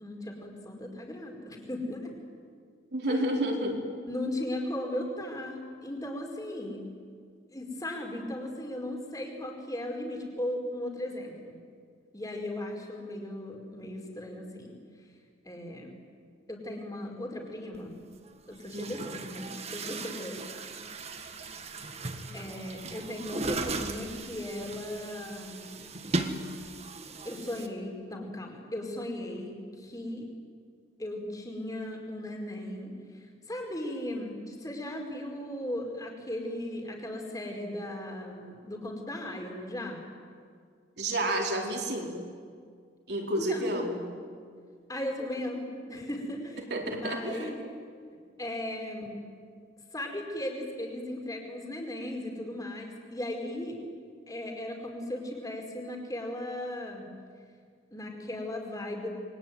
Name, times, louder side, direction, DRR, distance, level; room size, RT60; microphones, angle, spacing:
voice 1, 0.0-2.1 3.1-3.3 4.1-6.8 7.5-11.6 12.1-14.8 15.4-16.0 16.5-18.0 18.5-20.4 22.3-25.7 27.2-30.3 31.0-40.0 43.4-43.8 44.9-46.6 46.9-47.6 48.4-49.2 49.9-53.8 54.3-57.0 57.9-59.1, left 1 dB, 20° left, 2 dB, 4.7 m, -37 dB
voice 2, 2.9-3.8 18.7-19.0 41.0-42.2 43.1-44.0 46.7-47.5, right 1 dB, 60° right, 1 dB, 4.3 m, -30 dB
Chatter / Gurgling / Tap, 17.7-17.8 18.6-27.7, right 2 dB, 35° right, 1.7 m, -37 dB
28.0 x 22.5 x 9.3 m, 2.1 s
head